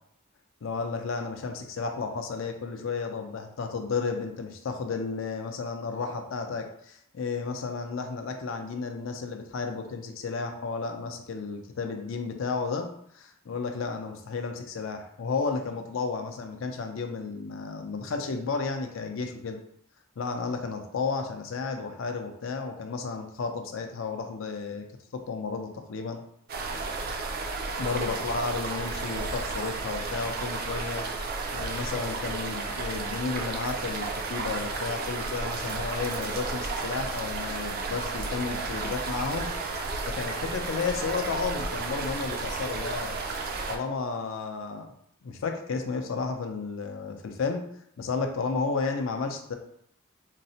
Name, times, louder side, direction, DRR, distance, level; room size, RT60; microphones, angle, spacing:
voice 1, 0.6-19.6 20.2-24.8 25.1-26.2 27.8-31.1 31.5-39.5 40.1-43.2 43.7-44.9 45.2-47.7 48.0-49.6, left 4 dB, 65° left, 5 dB, 0.4 m, -32 dB
sound 1, 26.5-43.8, right 3 dB, 45° right, 0.3 m, -33 dB
3.9 x 2.0 x 2.7 m, 0.71 s
head